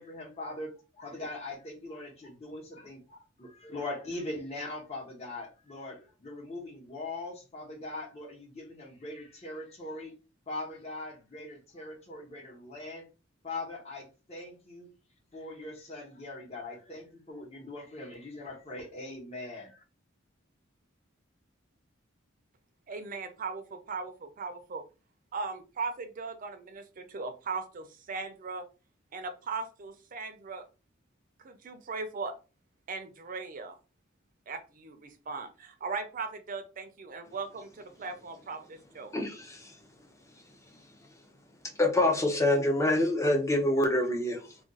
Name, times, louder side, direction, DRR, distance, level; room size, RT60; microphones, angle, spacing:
voice 1, 0.0-10.1 10.5-13.1 13.4-14.9 15.3-19.8, left 2 dB, 35° left, 0.9 m, -41 dB
voice 2, 22.9-24.8 25.3-28.7 29.1-30.7 31.4-32.3 32.9-33.8 34.5-39.2, right 4 dB, 45° right, 0.5 m, -38 dB
voice 3, 39.1-39.8 41.7-44.6, left 1 dB, 15° left, 0.6 m, -26 dB
2.4 x 2.3 x 3.9 m
head